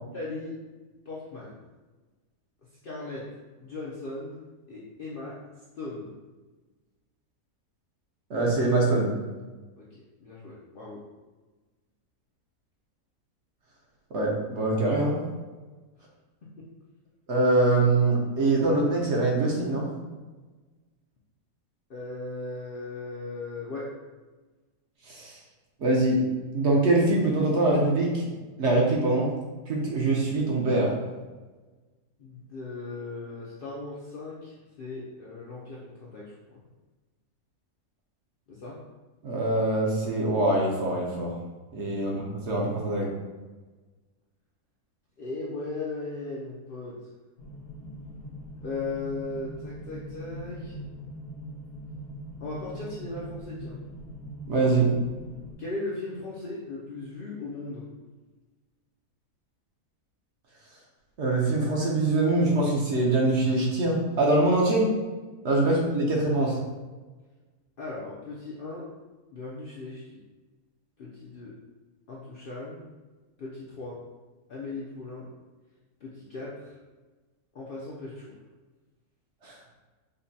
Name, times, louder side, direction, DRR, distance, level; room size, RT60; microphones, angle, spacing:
voice 1, 0.1-0.6 1.1-1.6 2.8-4.4 4.7-5.4 5.8-6.1 9.8-9.9 10.2-11.0 16.6-16.7 21.9-23.9 32.2-36.6 38.5-38.8 45.2-47.1 48.6-50.8 52.4-53.8 55.6-57.9 65.6-65.8 67.8-68.9 69.3-70.2 71.0-71.5 72.1-72.9 73.4-74.0 74.5-75.3 76.0-76.7 77.5-78.4, left 3 dB, 60° left, -6 dB, 0.5 m, -37 dB
voice 2, 8.3-9.1 14.1-15.2 17.3-19.9 25.1-25.4 25.8-26.2 26.5-28.3 28.6-29.3 29.7-30.9 39.2-41.3 41.7-43.1 54.5-54.9 61.2-64.9 65.4-66.6 79.4-79.5, right 2 dB, 60° right, -2 dB, 0.9 m, -23 dB
sound 1, 47.4-55.5, equal, 85° left, 1.3 m, -41 dB
5.1 x 2.1 x 2.7 m, 1.3 s
omnidirectional pair, 1.5 m